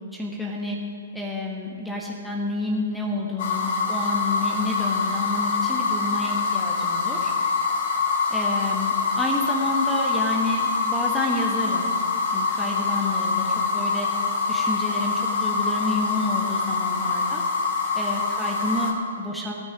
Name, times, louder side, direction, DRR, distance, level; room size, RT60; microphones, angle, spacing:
voice 1, 0.1-0.8 1.1-7.3 8.3-11.9 12.3-14.1 14.5-17.4 17.9-19.5, left 2 dB, 5° left, -1 dB, 1.4 m, -29 dB
sound 1, 3.4-18.9, left 4 dB, 50° left, 2.3 m, -25 dB
17.5 x 9.6 x 5.0 m, 2.2 s
figure-of-eight pair, 120°, 0 cm